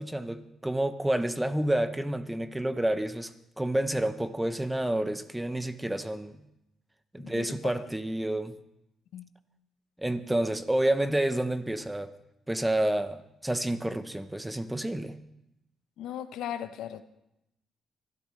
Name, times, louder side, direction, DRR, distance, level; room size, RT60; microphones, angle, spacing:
voice 1, 0.0-6.4 7.1-8.6 10.0-12.1 12.5-15.2, right 1 dB, 10° right, 0.9 m, -29 dB
voice 2, 7.2-7.6 9.1-9.3 16.0-17.0, left 10 dB, 85° left, 0.7 m, -37 dB
23.5 x 12.5 x 3.3 m
cardioid pair, 90°, 0 cm